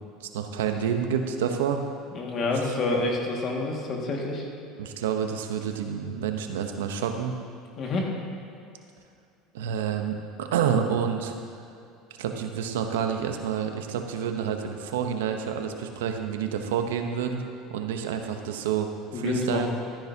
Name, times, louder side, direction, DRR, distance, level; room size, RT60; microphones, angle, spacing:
voice 1, 0.2-1.8 4.8-7.4 9.5-11.3 12.2-19.7, right 7 dB, 90° right, 5 dB, 0.8 m, -28 dB
voice 2, 2.1-4.4 7.8-8.1 19.1-19.7, left 3 dB, 45° left, -1 dB, 1.9 m, -28 dB
13.0 x 10.0 x 2.8 m, 2.5 s
supercardioid pair, 100°, 0 cm